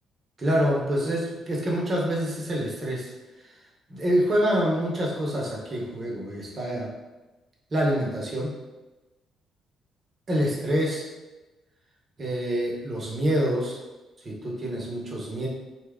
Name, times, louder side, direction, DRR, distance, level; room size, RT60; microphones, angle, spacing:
voice 1, 0.4-3.1 3.9-6.9 7.7-8.5 10.3-11.0 12.2-13.8 14.2-15.5, equal, 40° right, -3 dB, 0.9 m, -26 dB
2.8 x 2.2 x 3.5 m, 1.1 s
cardioid pair, 90°, 0 cm